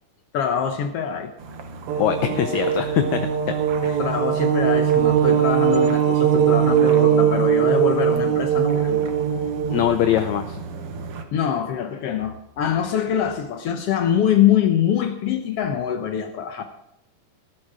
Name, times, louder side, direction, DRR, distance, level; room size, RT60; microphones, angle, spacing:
voice 1, 0.3-1.3 4.0-9.1 11.3-16.6, left 9 dB, 90° left, 6 dB, 1.3 m, -24 dB
sound 1, 1.4-11.2, right 3 dB, 60° right, 1.6 m, -38 dB
sound 2, 1.9-9.8, right 9 dB, 90° right, 3.0 m, -20 dB
voice 2, 2.0-3.5 3.8-4.0 9.7-10.6, left 10 dB, 75° left, 8 dB, 1.7 m, -22 dB
19.0 x 9.0 x 4.9 m, 0.79 s
omnidirectional pair, 4.0 m